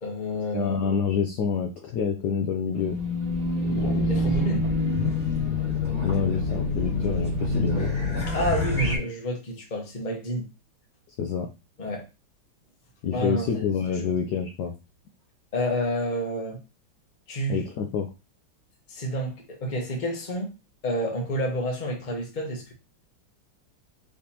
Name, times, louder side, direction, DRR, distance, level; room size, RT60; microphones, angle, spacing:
voice 1, 0.0-0.8 4.1-4.7 8.3-10.5 11.8-12.1 13.1-13.7 14.0-14.1 15.5-16.6 17.3-17.6 18.9-20.6 20.8-22.7, equal, 30° left, 1.0 m, -29 dB
voice 2, 0.5-2.9 3.7-4.2 6.0-7.9 11.2-11.5 13.0-14.7 17.5-18.1, left 6 dB, 70° left, 1.0 m, -27 dB
Race car auto racing / Alarm, 2.7-9.0, left 2 dB, 5° right, 1.4 m, -26 dB
5.0 x 3.3 x 2.8 m
omnidirectional pair, 2.2 m